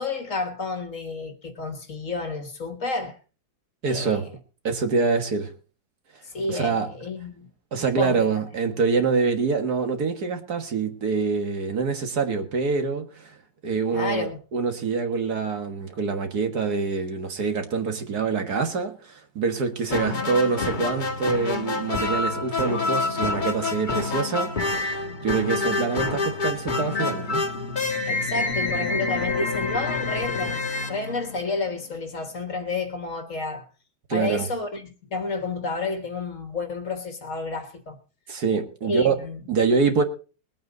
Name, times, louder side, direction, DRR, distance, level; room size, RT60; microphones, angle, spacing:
voice 1, 0.0-3.2 3.9-4.3 6.2-7.5 7.8-8.3 13.9-14.4 20.1-20.3 25.0-25.2 28.0-33.6 34.1-38.0 38.8-39.4, left 3 dB, 45° left, 1.5 m, -30 dB
voice 2, 3.8-4.3 4.6-5.5 6.5-6.9 7.7-13.4 13.6-27.5 34.1-34.5 38.3-39.1 39.5-40.0, right 5 dB, 60° right, 2.0 m, -25 dB
sound 1, 19.9-31.8, left 3 dB, 30° left, 1.3 m, -27 dB
21.0 x 8.7 x 3.9 m
omnidirectional pair, 1.9 m